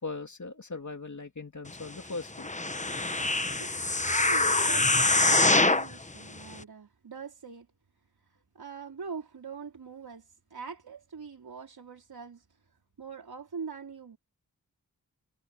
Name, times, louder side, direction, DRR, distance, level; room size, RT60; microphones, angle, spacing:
voice 1, 0.0-2.5, left 3 dB, 50° left, 2.8 m, -39 dB
sound 1, 2.4-5.9 6.5-6.6, left 2 dB, 20° left, 1.1 m, -24 dB
voice 2, 4.0-7.7 8.5-12.4 13.0-14.2, right 5 dB, 90° right, 4.9 m, -43 dB
cardioid pair, 50°, 36 cm